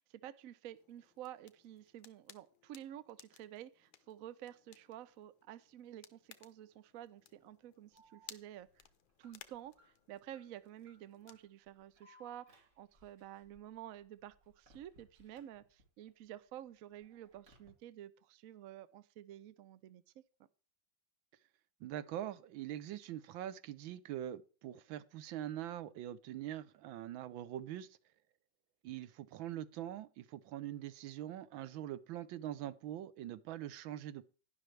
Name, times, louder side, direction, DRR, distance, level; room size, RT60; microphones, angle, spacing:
voice 1, 0.0-8.8 9.2-20.2, right 12 dB, 70° right, 0.8 m, -51 dB
sound 1, 0.8-11.5, left 11 dB, 85° left, 1.6 m, -61 dB
Alarm, 7.9-16.1 16.5-17.7, left 1 dB, 40° right, 3.0 m, -67 dB
voice 2, 21.8-27.9 28.8-34.2, right 12 dB, 90° right, 1.5 m, -43 dB
11.5 x 10.5 x 3.2 m
omnidirectional pair, 2.1 m